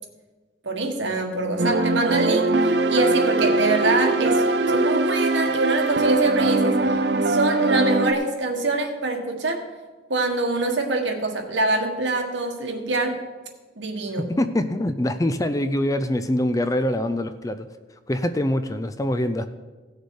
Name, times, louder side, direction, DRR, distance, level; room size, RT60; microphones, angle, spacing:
voice 1, 0.6-7.0 7.2-9.7 10.1-13.2 13.8-14.3, right 2 dB, 80° right, 4 dB, 1.6 m, -24 dB
sound 1, 1.6-8.1, right 2 dB, 65° right, 0.7 m, -21 dB
voice 2, 14.2-17.7 18.1-19.5, left 1 dB, 20° left, 10 dB, 0.4 m, -24 dB
17.0 x 6.6 x 4.8 m, 1.3 s
head